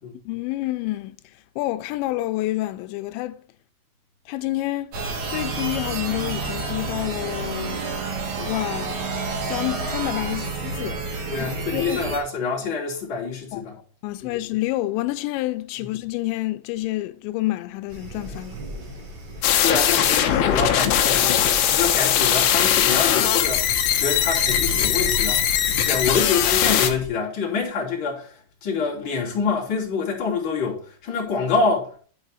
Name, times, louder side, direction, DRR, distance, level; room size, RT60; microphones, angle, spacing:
voice 1, 0.3-1.2 1.6-3.4 4.3-5.0 5.3-7.8 8.4-11.0 11.7-12.0 13.5-13.6 14.0-18.6, left 17 dB, 90° left, 2.9 m, -28 dB
sound 1, 4.9-12.2, right 4 dB, 50° right, 2.5 m, -29 dB
voice 2, 11.3-13.8 14.2-14.4 19.6-25.5 25.8-32.0, left 5 dB, 30° left, 3.0 m, -26 dB
sound 2, 17.9-27.1, right 1 dB, 90° right, 5.5 m, -36 dB
sound 3, 19.4-26.9, left 10 dB, 70° left, 2.8 m, -20 dB
11.0 x 4.8 x 4.2 m
omnidirectional pair, 5.1 m